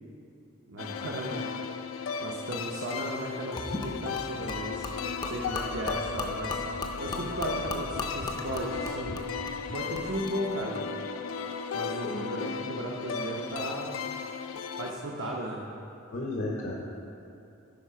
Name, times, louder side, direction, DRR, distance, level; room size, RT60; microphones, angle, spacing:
voice 1, 0.7-1.5 2.2-4.9 5.3-6.6 7.0-9.1 9.7-10.8 11.7-13.9 14.8-15.6, right 1 dB, 70° right, -2 dB, 0.7 m, -35 dB
sound 1, 0.8-14.9, left 6 dB, 85° left, 0.4 m, -35 dB
Gurgling / Liquid, 3.6-10.4, left 2 dB, 20° left, 0.5 m, -37 dB
voice 2, 16.1-16.8, left 2 dB, 70° left, -3 dB, 0.9 m, -33 dB
9.4 x 4.2 x 5.6 m, 2.7 s
head